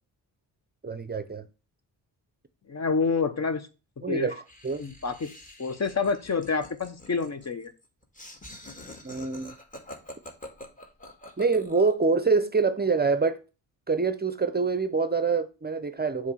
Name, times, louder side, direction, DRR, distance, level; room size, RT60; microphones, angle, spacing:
voice 1, 0.8-1.4 4.0-4.4 4.6-4.8 9.0-9.5 11.4-13.4 13.9-16.3, right 4 dB, 25° right, 0.6 m, -25 dB
voice 2, 2.7-3.7 4.1-4.3 4.8-5.3 5.6-7.7, left 4 dB, 40° left, 1.0 m, -28 dB
Laughter, 4.5-12.0, left 1 dB, 20° left, 1.9 m, -46 dB
7.2 x 3.2 x 6.1 m
cardioid pair, 60°, 42 cm